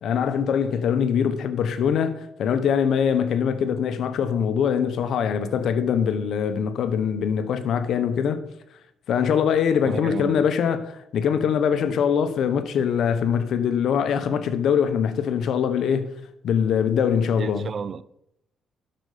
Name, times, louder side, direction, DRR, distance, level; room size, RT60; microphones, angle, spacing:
voice 1, 0.0-8.4 9.1-16.1 16.4-17.7, left 7 dB, 70° left, 1.0 m, -23 dB
voice 2, 9.8-10.5 17.4-18.0, right 6 dB, 50° right, 0.5 m, -32 dB
12.0 x 6.8 x 5.0 m
cardioid pair, 90°, 0 cm